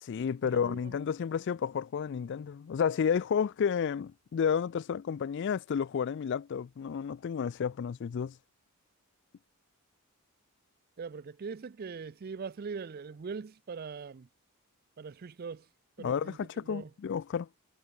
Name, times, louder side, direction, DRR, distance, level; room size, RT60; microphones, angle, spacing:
voice 1, 0.0-8.3 16.0-17.5, left 7 dB, 50° left, 0.3 m, -31 dB
voice 2, 0.5-1.0 11.0-14.3 15.0-15.7 16.0-16.9, right 5 dB, 40° right, 0.4 m, -41 dB
head